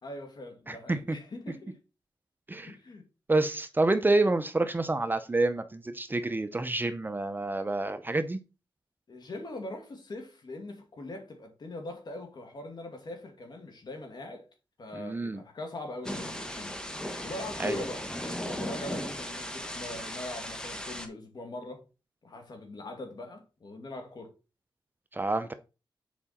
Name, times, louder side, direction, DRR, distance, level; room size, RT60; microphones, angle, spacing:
voice 1, 0.0-1.8 2.6-3.0 9.1-14.5 14.8-16.8 17.2-21.8 22.2-24.3, left 2 dB, 55° left, 2.3 m, -41 dB
voice 2, 0.7-1.2 2.5-2.7 3.3-8.4 14.9-15.4 17.6-17.8 25.1-25.5, right 2 dB, 20° right, 0.7 m, -28 dB
Thunder / Rain, 16.0-21.1, equal, 10° left, 1.4 m, -37 dB
7.3 x 4.9 x 4.2 m
cardioid pair, 80°, 9 cm